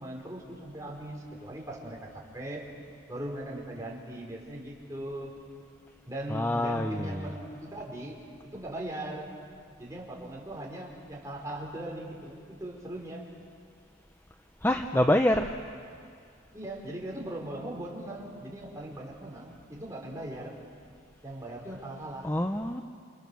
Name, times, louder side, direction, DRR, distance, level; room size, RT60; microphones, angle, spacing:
voice 1, 0.0-2.6 3.1-5.3 6.1-8.2 8.4-9.3 9.8-13.2 16.5-20.5 21.2-22.3, right 1 dB, 15° right, -2 dB, 4.9 m, -39 dB
voice 2, 6.3-7.3 14.6-15.5 22.2-22.8, left 1 dB, 10° left, 5 dB, 0.8 m, -26 dB
29.0 x 28.5 x 7.1 m, 2.2 s
head